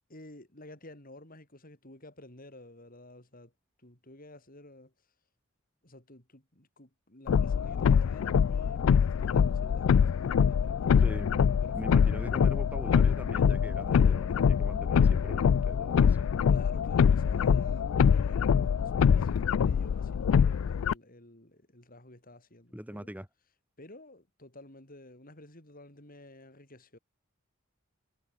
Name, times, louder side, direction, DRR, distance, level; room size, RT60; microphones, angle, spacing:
voice 1, 0.1-3.5 3.8-4.9 5.8-12.2 16.5-23.1 23.8-27.0, left 1 dB, 45° left, 7.9 m, -51 dB
sound 1, 7.3-20.9, left 7 dB, 90° left, 0.4 m, -24 dB
voice 2, 11.0-11.3 11.7-16.3 22.7-23.3, equal, 10° right, 3.5 m, -42 dB
head